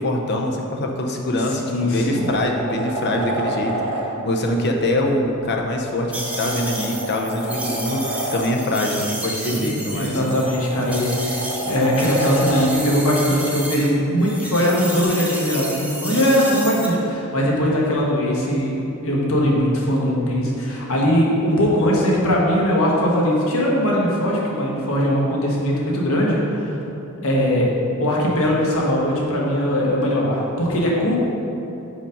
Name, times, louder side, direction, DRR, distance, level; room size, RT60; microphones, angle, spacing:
voice 1, 0.0-3.7 4.2-10.2, left 1 dB, 50° left, 2 dB, 0.7 m, -23 dB
sound 1, 1.2-1.3 1.8-4.0 5.7-8.4 9.9-12.7 15.0-15.1, right 1 dB, 70° right, 1.1 m, -29 dB
voice 2, 1.6-2.3 9.3-26.8 27.2-27.7 28.0-31.2, equal, 70° left, -3 dB, 1.3 m, -20 dB
sound 2, 6.1-13.9 14.2-16.9, right 1 dB, 5° right, 0.7 m, -31 dB
5.1 x 5.1 x 5.2 m, 2.9 s
head